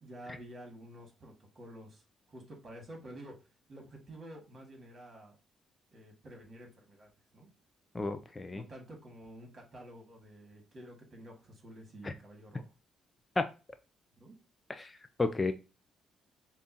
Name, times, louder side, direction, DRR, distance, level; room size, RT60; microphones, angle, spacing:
voice 1, 0.0-5.4 5.9-7.5 8.5-12.7 14.2-14.4, right 1 dB, 40° right, 1 dB, 1.9 m, -50 dB
voice 2, 7.9-8.6 12.0-12.1 13.4-13.5 14.7-15.5, left 3 dB, 20° left, 10 dB, 0.4 m, -32 dB
5.2 x 2.4 x 2.8 m, 0.31 s
cardioid pair, 90°, 0 cm